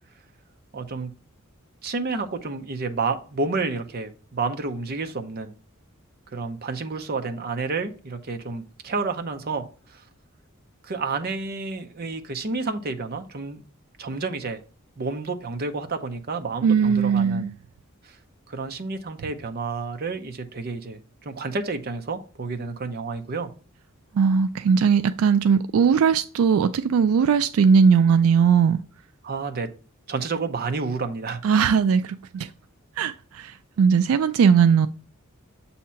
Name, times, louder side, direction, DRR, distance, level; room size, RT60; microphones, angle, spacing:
voice 1, 0.7-1.1 1.8-5.5 6.3-10.0 10.8-13.6 14.0-14.6 15.0-17.5 18.0-18.2 18.5-23.5 29.2-29.7 30.1-31.4, right 4 dB, 50° right, 0.7 m, -30 dB
voice 2, 16.6-17.5 24.2-28.8 31.4-32.5 33.0-34.9, right 6 dB, 80° right, 0.3 m, -19 dB
7.3 x 2.8 x 5.6 m
head